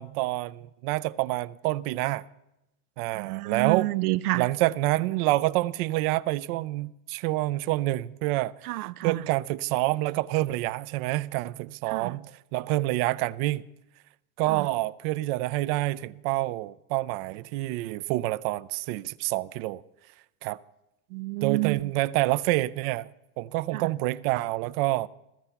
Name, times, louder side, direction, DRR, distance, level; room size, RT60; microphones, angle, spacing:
voice 1, 0.0-2.2 3.0-3.9 4.3-8.7 9.0-13.6 14.4-19.8 20.4-20.6 21.4-23.1 23.4-25.1, right 18 dB, 45° right, 0.5 m, -27 dB
voice 2, 3.1-4.5 8.6-9.2 11.9-12.2 14.5-14.7 21.1-21.9 23.7-23.9, right 21 dB, 85° right, 0.6 m, -29 dB
15.0 x 14.5 x 5.7 m
supercardioid pair, 145°, 43 cm